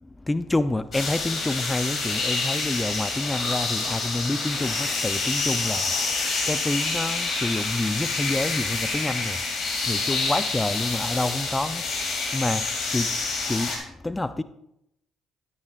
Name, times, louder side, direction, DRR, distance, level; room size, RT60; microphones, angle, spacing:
voice 1, 0.0-14.4, left 2 dB, 15° left, 0.5 m, -28 dB
sound 1, 0.9-13.8, left 3 dB, 55° left, 3.4 m, -27 dB
12.0 x 9.6 x 2.5 m
hypercardioid pair, 55°, 0 cm